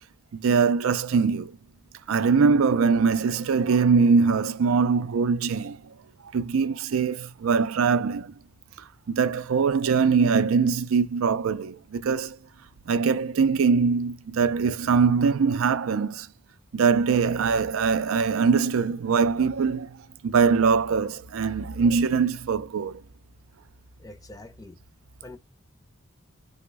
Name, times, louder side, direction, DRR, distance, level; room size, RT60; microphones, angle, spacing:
voice 1, 0.3-1.5 2.1-5.8 6.3-8.3 9.1-12.4 12.9-16.3 16.7-23.0, right 5 dB, 80° right, 0.4 m, -22 dB
voice 2, 24.0-24.8 25.2-25.4, left 2 dB, 15° left, 0.5 m, -44 dB
3.0 x 2.1 x 3.3 m
head